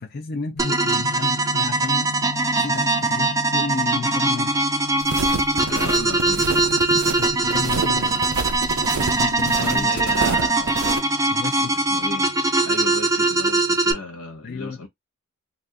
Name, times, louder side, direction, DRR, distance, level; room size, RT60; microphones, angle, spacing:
voice 1, 0.0-2.1 2.5-4.5 7.2-8.2 9.1-9.9 11.3-11.7 14.4-14.8, left 4 dB, 45° left, 0.5 m, -31 dB
sound 1, 0.5-14.0, left 5 dB, 60° left, 0.9 m, -38 dB
sound 2, 0.6-13.9, right 2 dB, 15° right, 0.5 m, -21 dB
sound 3, 5.0-11.0, right 4 dB, 85° right, 0.6 m, -28 dB
voice 2, 5.6-6.9 9.5-10.9 11.7-12.3 12.6-14.9, left 2 dB, 90° left, 1.2 m, -34 dB
2.5 x 2.5 x 3.4 m
head